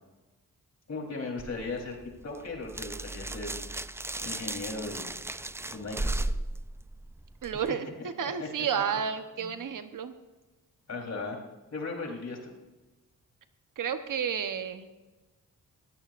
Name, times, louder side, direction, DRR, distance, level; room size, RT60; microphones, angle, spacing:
voice 1, 0.9-2.0 2.2-3.6 4.2-5.1 5.7-6.3 8.2-8.5 9.4-9.5 10.9-11.4 11.7-12.5, left 3 dB, 55° left, 0 dB, 3.9 m, -37 dB
sound 1, 1.4-7.7, right 2 dB, 10° right, 0.3 m, -36 dB
voice 2, 7.4-10.1 13.8-14.9, right 7 dB, 70° right, 9 dB, 1.1 m, -31 dB
19.5 x 15.0 x 2.6 m, 1.2 s
cardioid pair, 80°, 33 cm